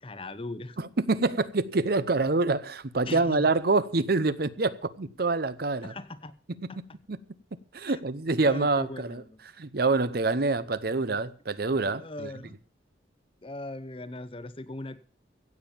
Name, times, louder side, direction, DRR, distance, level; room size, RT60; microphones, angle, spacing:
voice 1, 0.0-0.8 3.1-3.5 5.8-6.3 6.7-6.8 7.8-8.0 8.4-9.4 12.0-12.6 13.4-15.0, left 2 dB, 30° left, 0.8 m, -39 dB
voice 2, 0.8-5.9 6.8-6.9 7.1-7.2 7.7-9.2 9.6-12.3, right 3 dB, 55° right, 0.8 m, -26 dB
16.0 x 7.3 x 7.2 m
head